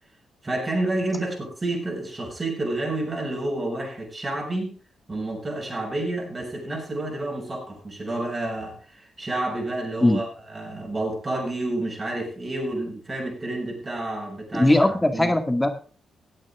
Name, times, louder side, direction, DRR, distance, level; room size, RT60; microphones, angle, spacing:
voice 1, 0.4-4.8 5.1-15.3, right 2 dB, 35° right, 1 dB, 6.6 m, -29 dB
voice 2, 14.5-15.7, left 1 dB, 15° left, 7 dB, 2.2 m, -19 dB
17.0 x 8.7 x 3.7 m, 0.37 s
hypercardioid pair, 45°, 0 cm